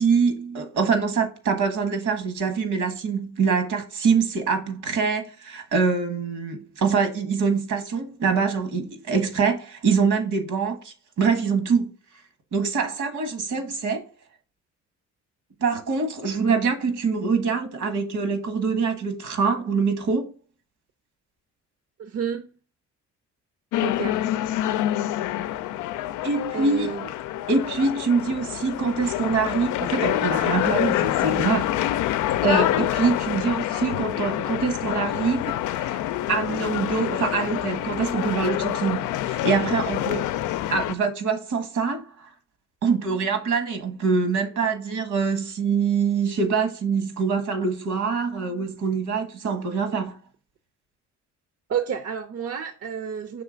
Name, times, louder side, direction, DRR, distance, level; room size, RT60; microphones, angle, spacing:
voice 1, 0.0-11.9 12.5-14.0 15.6-20.3 26.2-26.9 27.5-31.7 32.4-36.0 36.3-40.2 40.7-42.0 42.8-50.2, right 5 dB, 75° right, 1.6 m, -24 dB
voice 2, 22.0-22.5 23.8-24.2 26.5-27.1 51.7-53.4, right 7 dB, 55° right, 0.7 m, -30 dB
sound 1, 23.7-40.9, left 13 dB, 80° left, 0.5 m, -26 dB
6.0 x 3.2 x 5.1 m
cardioid pair, 90°, 30 cm